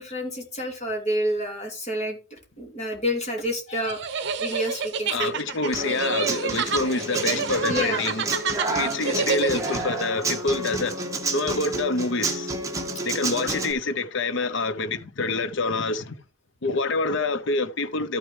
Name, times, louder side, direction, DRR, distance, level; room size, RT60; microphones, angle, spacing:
voice 1, 0.0-5.4 7.6-8.2, equal, 30° left, 2.7 m, -29 dB
sound 1, 3.8-9.8, right 5 dB, 55° right, 0.8 m, -28 dB
voice 2, 5.1-8.2 8.7-12.5 13.0-16.2 16.6-18.2, left 3 dB, 60° left, 0.7 m, -27 dB
Human voice / Acoustic guitar, 5.7-13.7, right 2 dB, 15° right, 1.4 m, -30 dB
13.5 x 6.3 x 3.2 m
head